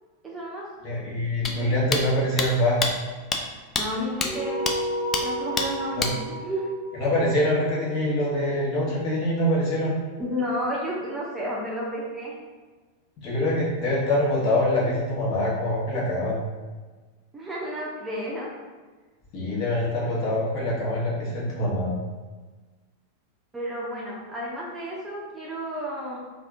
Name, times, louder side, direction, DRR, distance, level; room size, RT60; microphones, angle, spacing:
voice 1, 0.2-0.7 1.4-1.9 3.8-4.7 5.2-6.7 10.2-12.4 17.3-18.5 23.5-26.2, equal, 15° right, -5 dB, 0.7 m, -32 dB
voice 2, 0.8-2.8 5.9-6.1 6.9-9.9 13.2-16.4 19.3-21.9, left 1 dB, 40° left, -7 dB, 1.4 m, -24 dB
sound 1, 1.4-1.5 1.9-2.0 2.4-2.5 2.8-2.9 3.3-3.4 3.7-3.8 4.2-4.3 4.7-4.8 5.1-5.2 5.6-5.7 6.0-6.1, left 4 dB, 25° left, 0.4 m, -25 dB
sound 2, 4.2-9.0, right 1 dB, 60° left, 1.2 m, -33 dB
3.5 x 2.5 x 3.6 m, 1.3 s
figure-of-eight pair, 90°, 0 cm